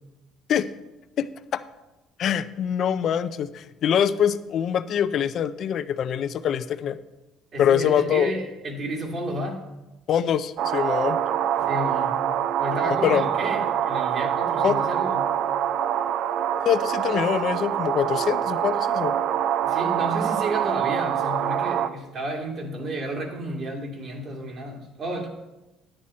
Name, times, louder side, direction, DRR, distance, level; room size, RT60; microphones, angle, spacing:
voice 1, 2.2-7.0 7.6-8.3 10.1-11.2 12.8-13.2 14.6-14.7 16.5-19.1, left 9 dB, 55° left, 13 dB, 0.5 m, -24 dB
voice 2, 7.5-9.7 11.5-12.3 12.6-15.3 19.6-25.3, right 1 dB, 45° right, 1 dB, 2.3 m, -31 dB
sound 1, 10.6-21.9, right 10 dB, 65° right, 0.5 m, -25 dB
10.5 x 8.8 x 4.2 m, 1.0 s
supercardioid pair, 95°, 0 cm